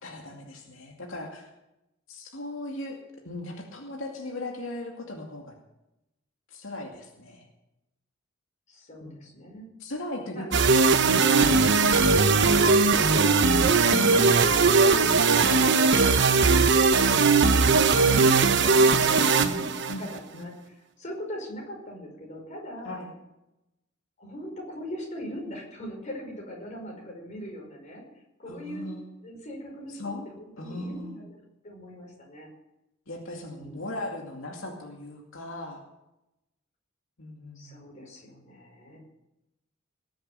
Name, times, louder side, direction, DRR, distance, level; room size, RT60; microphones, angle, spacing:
voice 1, 0.0-1.5 2.1-3.0 3.2-5.6 6.5-7.4 9.0-9.2 9.8-10.6 11.1-11.6 11.8-12.5 13.9-14.3 17.8-18.3 19.4-19.6 19.9-20.0 20.3-20.5 22.8-23.1 28.5-29.0 29.9-30.3 30.6-31.2 33.1-35.8 37.2-37.8, left 2 dB, 85° left, 0 dB, 2.3 m, -37 dB
voice 2, 8.7-9.7 10.3-10.5 12.8-20.5 21.0-23.0 24.2-28.0 28.4-28.9 29.2-31.4 31.6-32.5 33.3-33.9 37.6-39.0, equal, 40° left, 0 dB, 5.4 m, -40 dB
sound 1, 10.5-20.2, right 4 dB, 60° right, 1.0 m, -20 dB
19.0 x 7.8 x 7.6 m, 0.92 s
head